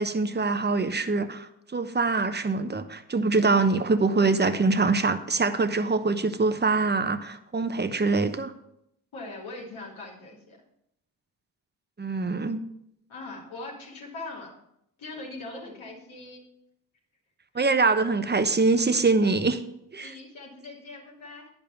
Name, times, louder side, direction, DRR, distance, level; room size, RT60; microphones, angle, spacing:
voice 1, 0.0-8.5 12.0-12.6 17.5-19.6 19.9-20.1, right 3 dB, 20° right, 10 dB, 1.0 m, -24 dB
voice 2, 9.1-10.6 13.1-14.5 15.0-16.4 20.0-21.5, left 2 dB, 75° left, -2 dB, 3.0 m, -41 dB
10.5 x 5.4 x 5.8 m, 0.77 s
supercardioid pair, 40°, 48 cm